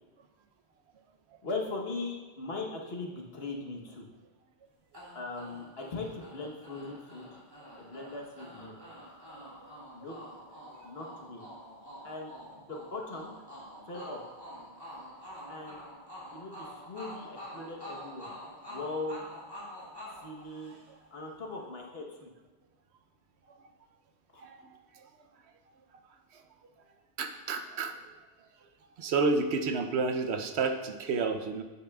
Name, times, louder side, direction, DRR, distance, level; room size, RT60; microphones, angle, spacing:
voice 1, 1.4-4.0 5.1-7.2 7.8-8.8 9.9-10.2 10.8-11.4 12.0-13.3 13.9-14.2 15.5-15.8 16.3-18.3 18.7-19.3 20.2-20.8 21.1-22.3 24.3-24.5, left 3 dB, 65° left, 0 dB, 1.4 m, -39 dB
sound 1, 4.9-21.1, equal, 20° right, 2.4 m, -47 dB
voice 2, 27.2-27.9 29.0-31.6, right 4 dB, 75° right, 6 dB, 0.9 m, -30 dB
9.4 x 8.5 x 2.3 m, 1.2 s
omnidirectional pair, 1.1 m